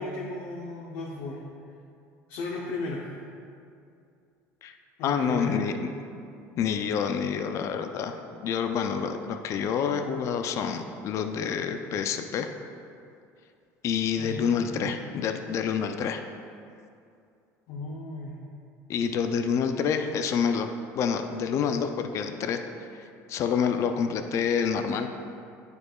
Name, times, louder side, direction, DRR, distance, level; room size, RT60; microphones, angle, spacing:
voice 1, 0.0-1.4 2.3-3.0 5.0-5.6 14.2-14.9 17.7-18.4, left 2 dB, 70° left, -3 dB, 0.8 m, -35 dB
voice 2, 5.0-5.9 6.6-12.5 13.8-16.3 18.9-22.6 22.9-25.1, left 7 dB, 50° left, 7 dB, 0.4 m, -28 dB
9.2 x 4.7 x 2.3 m, 2.5 s
supercardioid pair, 105°, 6 cm